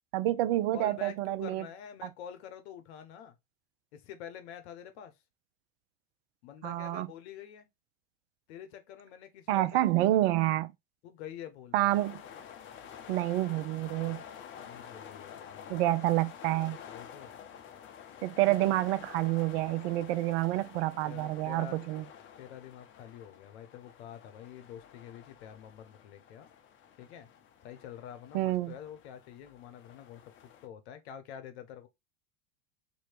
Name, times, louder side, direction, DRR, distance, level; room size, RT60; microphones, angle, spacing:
voice 1, 0.1-1.6 2.0-2.1 6.6-7.1 9.5-10.7 11.7-12.2 13.1-14.2 15.7-16.8 18.2-22.0 28.3-28.7, right 15 dB, 55° right, 0.5 m, -28 dB
voice 2, 0.7-3.4 3.9-5.1 6.4-7.7 8.5-10.4 11.0-12.0 14.6-15.7 16.9-17.4 18.6-18.7 20.5-20.6 21.0-21.8 22.4-26.5 27.0-27.3 27.6-31.9, left 9 dB, 60° left, 0.9 m, -47 dB
sound 1, 11.9-30.7, left 8 dB, 35° left, 0.7 m, -50 dB
3.1 x 2.8 x 4.4 m
hypercardioid pair, 90°, 37 cm